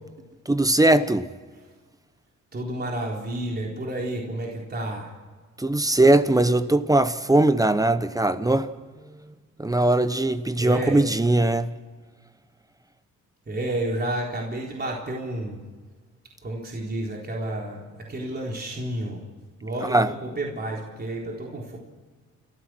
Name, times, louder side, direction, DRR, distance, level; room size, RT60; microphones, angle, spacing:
voice 1, 0.5-1.3 5.6-8.7 9.6-11.7 19.8-20.1, right 2 dB, 10° right, 1.0 m, -20 dB
voice 2, 2.5-5.1 10.6-11.1 13.5-15.6 16.4-19.2 19.6-21.8, right 1 dB, 30° right, 4.0 m, -31 dB
30.0 x 14.5 x 6.2 m
cardioid pair, 90°, 30 cm